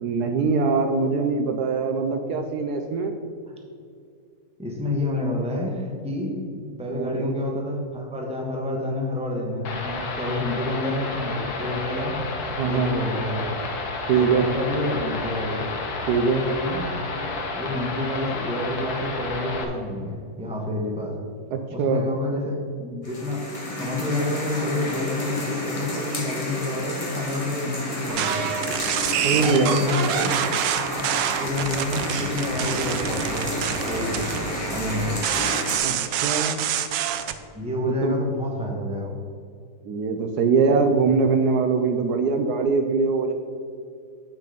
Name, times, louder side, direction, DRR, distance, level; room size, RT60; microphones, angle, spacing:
voice 1, 0.0-3.1 6.9-7.3 12.5-13.0 14.1-14.5 16.1-16.4 21.5-22.1 29.2-29.8 35.8-36.6 37.9-38.1 39.8-43.3, right 5 dB, 70° right, 6 dB, 1.1 m, -22 dB
voice 2, 4.6-6.3 6.6-12.3 12.6-13.6 14.2-15.7 16.1-21.2 21.7-28.5 29.3-30.3 30.9-31.1 31.4-35.2 37.5-39.1, left 1 dB, 5° right, -1 dB, 1.0 m, -29 dB
sound 1, 9.6-19.6, left 3 dB, 60° left, 1.6 m, -31 dB
sound 2, 23.0-35.8, left 1 dB, 20° left, 1.2 m, -31 dB
sound 3, 28.1-37.4, right 10 dB, 90° right, 1.3 m, -27 dB
8.5 x 6.0 x 5.0 m, 2.3 s
omnidirectional pair, 1.9 m